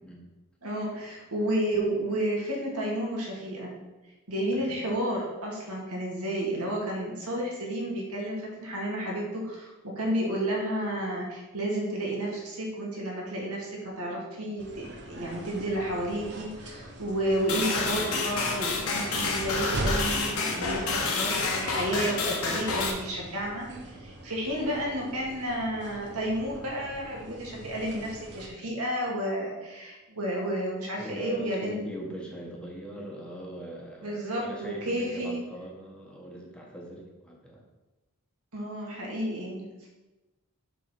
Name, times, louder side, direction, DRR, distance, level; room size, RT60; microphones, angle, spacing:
voice 1, 0.6-3.8 4.3-31.7 34.0-35.4 38.5-39.9, right 1 dB, 90° right, -2 dB, 2.1 m, -31 dB
voice 2, 4.5-4.8 31.0-37.6, right 1 dB, 5° left, -2 dB, 1.3 m, -40 dB
sound 1, 14.6-28.5, right 1 dB, 55° right, 1.0 m, -40 dB
sound 2, 17.5-22.9, left 4 dB, 70° left, 1.3 m, -29 dB
7.2 x 3.9 x 6.0 m, 1.1 s
head